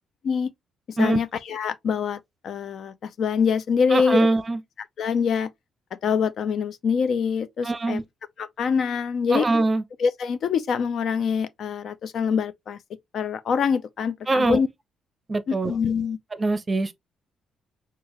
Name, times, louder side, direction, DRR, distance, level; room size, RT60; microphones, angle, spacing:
voice 1, 0.9-4.3 5.0-5.5 6.0-8.0 8.4-9.5 10.0-12.8 13.1-14.7 15.5-16.2, left 6 dB, 65° left, 0.5 m, -25 dB
voice 2, 3.9-4.6 7.6-8.0 9.3-9.8 14.3-14.6 15.3-15.7 16.4-16.9, right 2 dB, 25° right, 0.6 m, -22 dB
4.5 x 2.4 x 3.0 m
cardioid pair, 90°, 0 cm